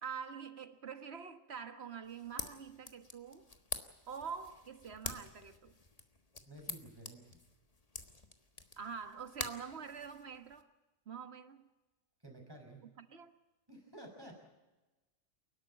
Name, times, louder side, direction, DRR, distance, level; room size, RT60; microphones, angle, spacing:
voice 1, 0.0-3.5 4.1-5.8 8.8-10.7 11.1-11.7 13.0-13.3, right 6 dB, 55° right, 1.6 m, -45 dB
sound 1, 2.0-10.6, left 3 dB, 30° left, 1.5 m, -47 dB
voice 2, 6.5-7.4 12.2-12.8 13.7-14.4, right 1 dB, 15° right, 5.7 m, -52 dB
29.0 x 12.0 x 8.8 m
omnidirectional pair, 1.3 m